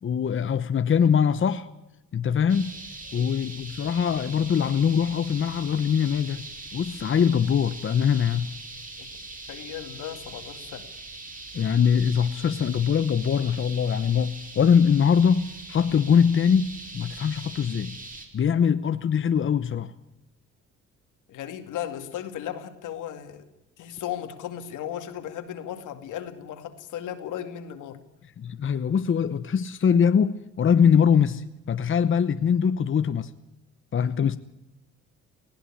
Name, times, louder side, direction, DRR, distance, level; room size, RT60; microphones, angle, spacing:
voice 1, 0.0-1.7 2.1-2.7 3.1-6.4 6.7-8.5 11.5-17.9 18.3-19.9 28.4-33.3 33.9-34.4, left 7 dB, 40° left, 1.0 m, -22 dB
sound 1, 2.5-18.3, right 2 dB, 25° right, 4.9 m, -41 dB
voice 2, 9.5-10.9 21.3-23.4 23.8-28.0, left 10 dB, 80° left, 2.3 m, -36 dB
20.0 x 16.0 x 8.7 m
cardioid pair, 90°, 30 cm